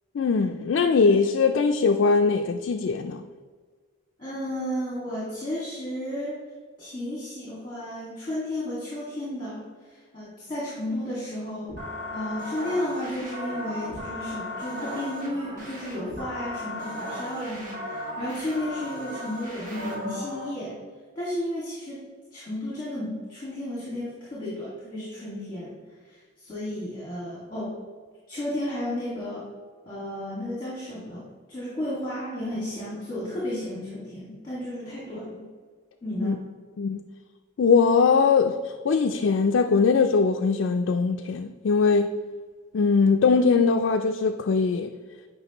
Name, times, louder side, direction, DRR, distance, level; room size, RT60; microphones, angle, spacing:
voice 1, 0.1-3.3 36.2-36.4 36.8-37.0 37.6-42.1 42.7-44.9, left 5 dB, 70° left, 0.4 m, -21 dB
voice 2, 4.2-6.4 6.8-9.6 9.9-11.7 12.1-20.8 21.2-22.0 22.3-27.7 28.3-29.5 29.9-31.2 31.5-35.5 36.0-36.5, left 1 dB, 25° left, 2.0 m, -33 dB
sound 1, 11.7-20.5, left 1 dB, 45° right, 1.7 m, -36 dB
9.7 x 5.0 x 3.0 m
head